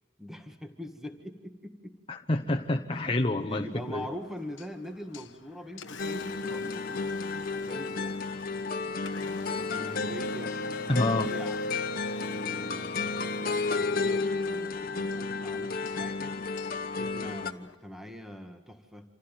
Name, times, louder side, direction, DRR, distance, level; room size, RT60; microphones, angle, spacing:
voice 1, 0.2-2.0 2.9-3.1 3.4-7.2 7.6-8.2 9.4-11.6 12.2-16.4 16.9-19.1, equal, ahead, 4 dB, 1.9 m, -43 dB
voice 2, 2.1-4.1 10.9-11.3, left 2 dB, 30° left, 2 dB, 1.1 m, -28 dB
Engine, 3.7-17.7, left 2 dB, 80° left, 1.3 m, -46 dB
sound 1, 6.0-17.5, left 4 dB, 50° left, 1.2 m, -32 dB
27.5 x 16.0 x 9.2 m, 1.4 s
head